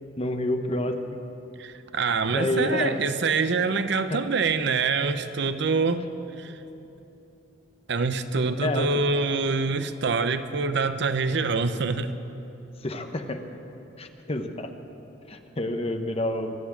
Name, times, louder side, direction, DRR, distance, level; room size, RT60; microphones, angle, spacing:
voice 1, 0.2-1.0 2.3-3.0 4.1-4.2 8.6-9.1 12.8-13.4 14.0-14.7 15.3-16.6, left 1 dB, 30° left, 6 dB, 0.9 m, -28 dB
voice 2, 1.6-6.1 6.4-6.5 7.9-12.1, right 4 dB, 65° right, 11 dB, 0.7 m, -25 dB
23.5 x 8.5 x 7.3 m, 2.9 s
head